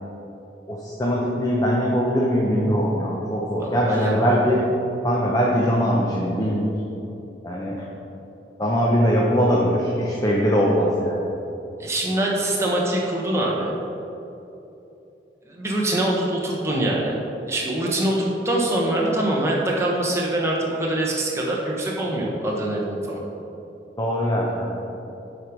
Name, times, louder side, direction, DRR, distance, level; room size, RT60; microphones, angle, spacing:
voice 1, 0.7-4.6 5.0-6.7 7.4-7.8 8.6-11.3 24.0-24.8, equal, 20° left, -3 dB, 0.7 m, -21 dB
voice 2, 3.6-4.6 11.8-13.7 15.5-17.2 17.5-23.2, right 1 dB, 15° right, -3 dB, 1.1 m, -24 dB
7.6 x 5.0 x 5.2 m, 2.9 s
head